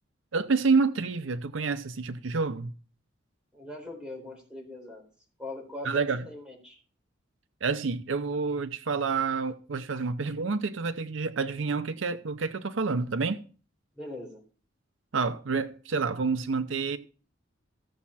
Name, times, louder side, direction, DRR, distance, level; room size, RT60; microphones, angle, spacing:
voice 1, 0.3-2.7 5.8-6.3 7.6-13.4 15.1-17.0, right 4 dB, 75° right, 0.7 m, -28 dB
voice 2, 3.5-5.0 5.4-6.8 14.0-14.4, left 1 dB, 5° right, 4.0 m, -41 dB
15.5 x 7.2 x 4.2 m
head